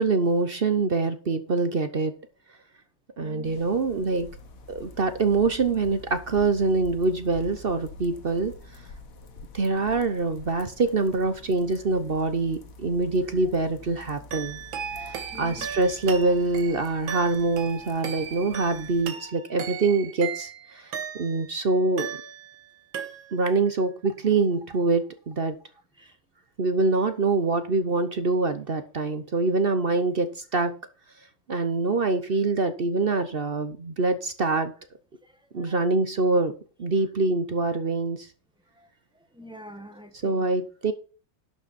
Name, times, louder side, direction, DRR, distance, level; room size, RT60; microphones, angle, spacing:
voice 1, 0.0-2.1 3.2-4.3 4.7-8.5 9.5-14.6 15.0-20.9 21.2-22.1 23.3-25.6 26.6-30.8 31.5-34.7 35.5-36.5 36.8-38.3 40.2-40.9, right 3 dB, 50° right, 0.7 m, -25 dB
voice 2, 3.2-3.6 14.9-15.7 26.0-26.1 35.2-35.7 38.8-38.9 39.3-40.5, right 1 dB, 5° right, 1.2 m, -46 dB
sound 1, 3.4-19.0, left 3 dB, 50° left, 1.5 m, -47 dB
sound 2, 14.3-21.6 22.0-22.7 22.9-23.6, right 8 dB, 90° right, 2.1 m, -37 dB
11.5 x 6.6 x 4.2 m
omnidirectional pair, 2.1 m